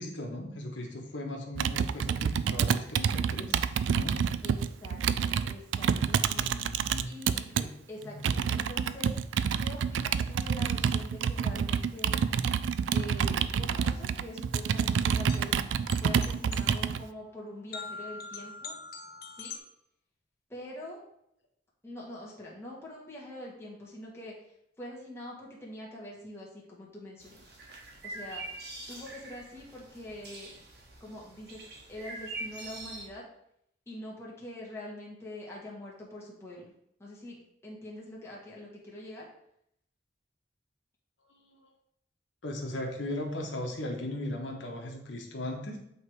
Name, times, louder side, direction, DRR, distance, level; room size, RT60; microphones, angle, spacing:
voice 1, 0.0-3.6 3.9-4.3 6.3-7.1 7.5-7.7 8.0-8.2 41.5-41.7 42.4-45.8, left 1 dB, 85° left, 1 dB, 1.2 m, -37 dB
Computer keyboard, 1.6-7.7 8.2-17.0, right 7 dB, 85° right, 0.3 m, -28 dB
voice 2, 4.4-7.5 7.9-9.1 9.5-12.1 12.9-15.6 16.0-18.7 19.3-19.5 20.5-21.0 21.8-24.3 24.8-27.4 28.0-28.4 28.9-30.5 31.0-33.3 33.9-36.7 37.0-39.3, left 1 dB, 15° left, -5 dB, 1.7 m, -44 dB
sound 1, 14.3-19.6, left 4 dB, 55° left, 0.9 m, -44 dB
sound 2, 27.2-33.1, right 2 dB, 60° right, 1.3 m, -44 dB
8.2 x 3.3 x 4.7 m, 0.75 s
head